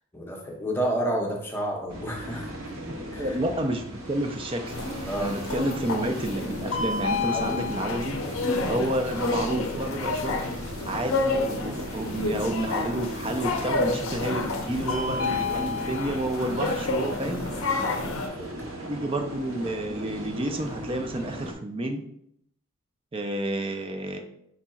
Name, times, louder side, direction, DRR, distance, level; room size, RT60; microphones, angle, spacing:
voice 1, 0.0-2.7 3.1-3.4 5.0-5.4 7.3-7.6 8.6-8.9 17.7-18.7, right 1 dB, 10° left, -1 dB, 0.7 m, -31 dB
sound 1, 1.9-21.5, right 1 dB, 70° right, 1.0 m, -38 dB
voice 2, 2.8-4.8 5.2-8.2 8.7-10.4 10.9-17.4 18.9-22.0 23.1-24.2, right 1 dB, 25° right, 5 dB, 0.4 m, -30 dB
sound 2, 4.7-18.3, left 3 dB, 75° left, 0.6 m, -29 dB
5.1 x 4.2 x 2.3 m, 0.72 s
head